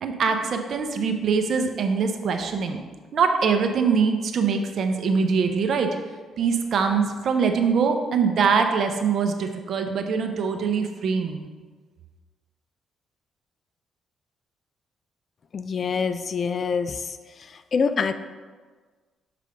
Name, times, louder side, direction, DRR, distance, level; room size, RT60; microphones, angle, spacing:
voice 1, 0.0-2.8 3.1-5.9 6.4-11.5, right 5 dB, 60° right, 5 dB, 0.7 m, -23 dB
voice 2, 15.5-17.2 17.7-18.1, left 5 dB, 45° left, 10 dB, 0.3 m, -25 dB
6.7 x 3.3 x 5.0 m, 1.4 s
cardioid pair, 90°, 0 cm